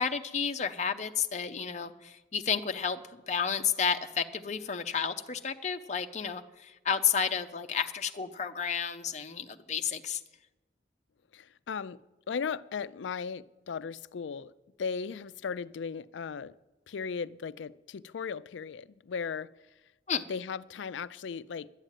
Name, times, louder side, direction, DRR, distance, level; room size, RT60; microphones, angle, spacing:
voice 1, 0.0-10.2 20.1-20.2, left 7 dB, 40° left, 0.6 m, -31 dB
voice 2, 11.3-12.0 12.3-14.5 14.8-16.5 16.9-19.5 20.3-21.7, left 6 dB, 90° left, 0.4 m, -37 dB
11.5 x 9.0 x 9.0 m
head